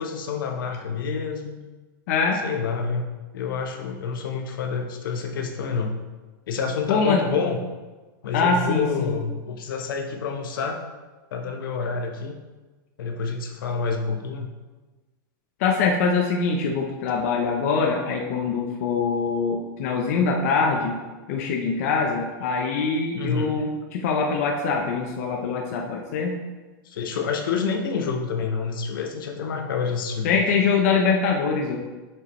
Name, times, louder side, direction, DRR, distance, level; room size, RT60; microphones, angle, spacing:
voice 1, 0.0-1.6 2.4-3.1 3.3-6.0 6.5-7.6 8.2-10.8 11.3-12.4 13.0-14.5 23.1-23.7 26.8-30.5, left 5 dB, 70° left, 4 dB, 1.0 m, -28 dB
voice 2, 2.1-2.4 6.9-7.2 8.3-9.2 15.6-21.0 21.3-26.4 30.2-31.8, left 4 dB, 40° left, 1 dB, 0.7 m, -23 dB
6.9 x 6.6 x 3.1 m, 1.2 s
supercardioid pair, 175°, 12 cm